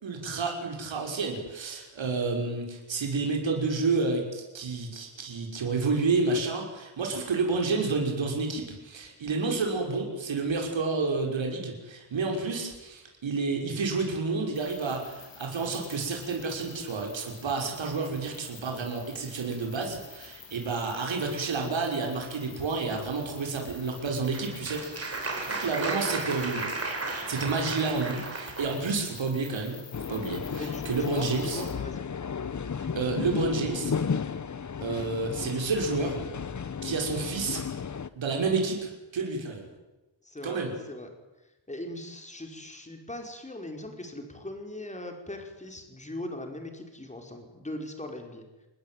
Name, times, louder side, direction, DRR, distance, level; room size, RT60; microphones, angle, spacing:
voice 1, 0.0-26.7 27.3-29.8 30.1-31.6 32.9-33.9 34.8-36.2 36.8-37.6 38.2-39.7 40.4-40.7, right 4 dB, 75° right, 1 dB, 5.9 m, -30 dB
sound 1, 14.5-31.7, left 6 dB, 65° left, 5.6 m, -49 dB
Applause, 23.9-28.8, right 3 dB, 30° right, 6.1 m, -34 dB
sound 2, 29.9-38.1, left 6 dB, 40° left, 1.1 m, -34 dB
voice 2, 30.6-32.1 34.5-34.6 40.2-40.6 40.9-41.1 41.7-48.5, left 1 dB, 15° left, 4 dB, 5.2 m, -40 dB
28.5 x 20.5 x 9.4 m, 1.0 s
wide cardioid pair, 140°, 46 cm